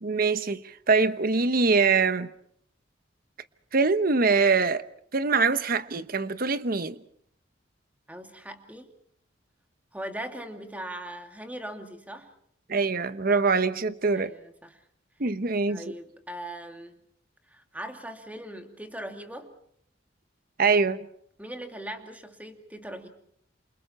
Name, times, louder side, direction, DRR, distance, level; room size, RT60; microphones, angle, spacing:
voice 1, 0.0-2.3 3.7-4.8 5.1-7.0 12.7-14.3 15.2-15.9 20.6-21.1, right 4 dB, 50° right, 1.0 m, -24 dB
voice 2, 8.1-8.9 9.9-12.3 14.2-14.8 15.7-17.0 17.5-19.5 21.4-23.1, right 1 dB, 10° right, 2.5 m, -40 dB
28.5 x 28.0 x 4.4 m
head